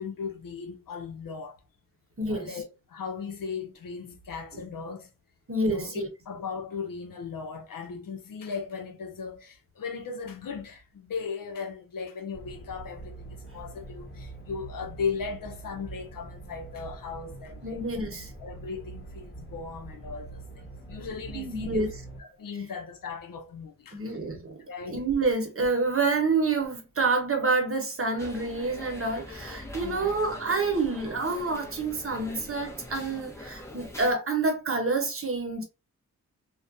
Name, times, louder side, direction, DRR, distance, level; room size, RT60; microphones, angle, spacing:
voice 1, 0.0-1.6 2.3-5.1 5.7-18.0 18.4-20.4 20.9-21.9 22.2-24.0 24.7-25.0 29.8-30.1, left 5 dB, 65° left, 0.6 m, -37 dB
voice 2, 2.2-2.5 5.5-6.1 17.6-18.3 21.3-21.9 23.9-24.6 24.9-35.6, right 3 dB, 40° right, 0.9 m, -28 dB
sound 1, 12.3-22.2, right 2 dB, 30° left, 1.1 m, -44 dB
sound 2, 28.2-34.1, left 1 dB, 10° left, 0.7 m, -43 dB
2.3 x 2.1 x 2.6 m
cardioid pair, 50°, 36 cm